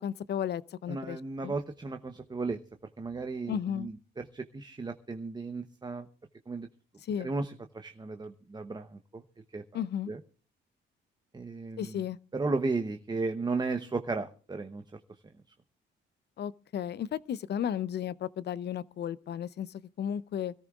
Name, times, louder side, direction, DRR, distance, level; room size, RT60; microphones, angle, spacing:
voice 1, 0.0-1.5 3.5-3.9 7.0-7.3 9.7-10.1 11.8-12.2 16.4-20.5, left 9 dB, 60° left, 0.6 m, -34 dB
voice 2, 0.9-2.6 3.0-6.1 6.5-6.7 7.2-9.2 9.5-9.6 10.1-10.2 11.3-12.0 12.3-15.0, right 3 dB, 20° right, 0.9 m, -35 dB
25.5 x 13.5 x 2.4 m
cardioid pair, 90°, 20 cm